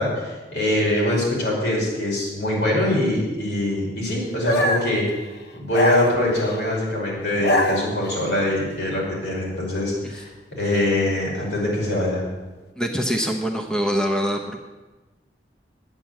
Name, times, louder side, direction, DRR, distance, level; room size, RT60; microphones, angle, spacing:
voice 1, 0.0-5.1 5.5-10.3 10.6-12.2, left 1 dB, 85° left, -4 dB, 5.3 m, -23 dB
sound 1, 4.5-5.0 5.7-6.6 7.2-8.3, left 1 dB, 65° left, 1.0 m, -23 dB
voice 2, 12.8-14.6, equal, 5° left, 2 dB, 0.9 m, -24 dB
10.0 x 8.8 x 7.7 m, 1.2 s
head